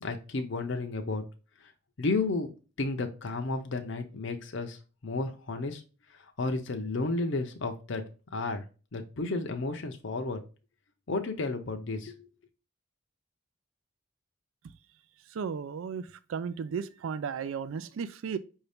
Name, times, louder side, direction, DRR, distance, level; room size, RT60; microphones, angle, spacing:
voice 1, 0.0-1.2 1.6-1.7 2.0-2.5 2.8-5.8 6.1-8.0 8.3-8.6 8.9-10.4 11.1-12.2, left 3 dB, 60° left, 0.6 m, -32 dB
voice 2, 15.3-18.4, right 6 dB, 70° right, 0.3 m, -35 dB
5.6 x 2.7 x 3.4 m
head